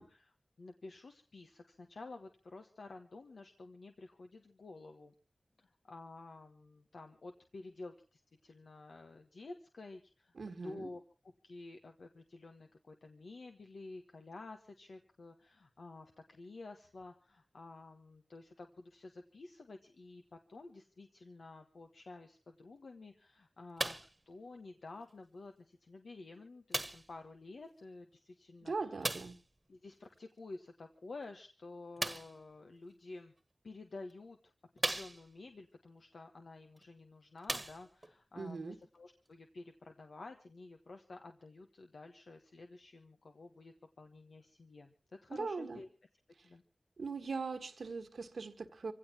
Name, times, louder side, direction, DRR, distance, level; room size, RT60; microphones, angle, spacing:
voice 1, 0.0-5.1 5.6-11.0 11.4-24.0 24.2-29.2 29.7-33.3 33.6-45.9 46.4-46.6, left 3 dB, 85° left, 4 dB, 1.3 m, -51 dB
voice 2, 10.4-10.9 28.6-29.4 38.4-38.8 45.3-45.8 47.0-48.9, right 4 dB, 85° right, 8 dB, 1.6 m, -40 dB
sound 1, 23.8-24.2 25.1-25.2 26.7-27.2 29.0-29.4 32.0-32.4 33.4-33.5 34.1-34.2 34.8-35.5 36.8-36.9 37.4-38.1 39.0-39.1, right 1 dB, 30° right, 1.3 m, -37 dB
25.5 x 16.5 x 2.9 m, 0.32 s
wide cardioid pair, 55°, 0 cm